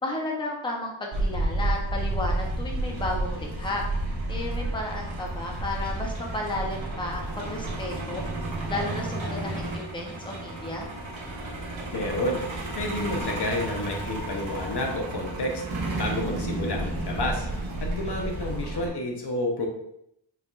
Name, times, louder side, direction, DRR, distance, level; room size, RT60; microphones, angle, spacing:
voice 1, 0.0-3.8 4.3-8.2 8.7-10.9, left 1 dB, 10° left, -1 dB, 0.8 m, -33 dB
Truck, 1.1-18.9, right 2 dB, 65° right, 1.4 m, -31 dB
voice 2, 11.9-15.6 16.0-17.5 17.8-19.7, left 1 dB, 55° left, 1 dB, 0.8 m, -30 dB
4.7 x 3.4 x 2.4 m, 0.77 s
wide cardioid pair, 90°, 49 cm